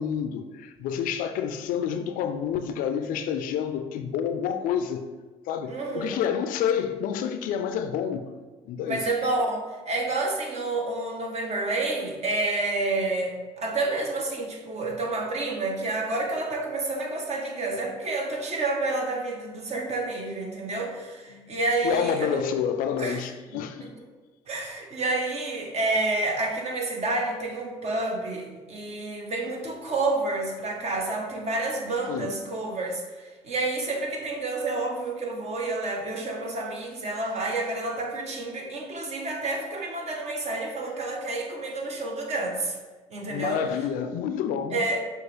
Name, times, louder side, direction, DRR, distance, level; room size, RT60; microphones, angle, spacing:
voice 1, 0.0-5.1 5.5-8.2 8.7-9.1 21.3-21.5 21.8-23.9 32.1-32.4 43.3-44.8, left 8 dB, 65° left, 0.4 m, -28 dB
voice 2, 5.7-6.2 8.9-22.4 23.0-23.2 23.5-23.9 24.5-42.8 43.1-43.6 44.7-45.0, right 2 dB, 45° right, 1.1 m, -29 dB
6.4 x 2.3 x 3.3 m
hypercardioid pair, 60°, 15 cm